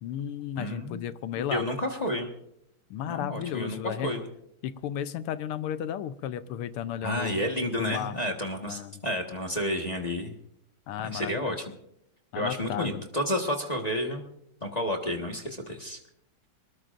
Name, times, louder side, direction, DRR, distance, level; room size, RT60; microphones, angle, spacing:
voice 1, 0.0-1.6 2.9-4.1 4.6-7.5 7.8-8.2 8.6-9.0 10.9-11.6 12.3-13.0, left 10 dB, 90° left, 12 dB, 1.7 m, -34 dB
voice 2, 0.6-1.0 1.4-2.3 3.1-4.2 7.0-10.4 11.0-11.8 12.3-14.2 14.6-16.0, equal, 20° left, 1 dB, 1.4 m, -31 dB
23.5 x 20.0 x 2.6 m, 0.75 s
omnidirectional pair, 2.4 m